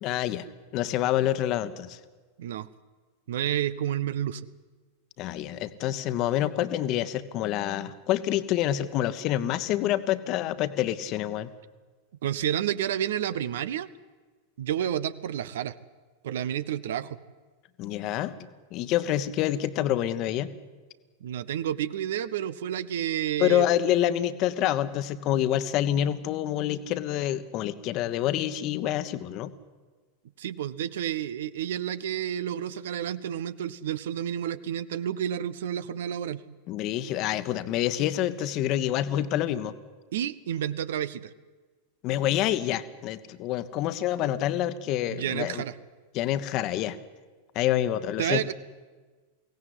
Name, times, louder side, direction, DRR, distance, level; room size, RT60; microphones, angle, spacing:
voice 1, 0.0-0.5 0.7-2.0 5.2-11.5 17.8-18.4 18.7-20.5 23.4-29.5 36.7-39.7 42.0-45.6 46.1-47.0 47.5-48.5, left 12 dB, 40° left, 12 dB, 1.3 m, -27 dB
voice 2, 3.3-4.5 12.2-13.9 14.6-15.7 16.2-17.2 21.2-23.7 30.4-36.4 40.1-41.3 45.1-45.7 48.2-48.5, right 10 dB, 60° right, 16 dB, 0.8 m, -30 dB
23.0 x 17.5 x 9.7 m, 1.4 s
figure-of-eight pair, 90°, 0 cm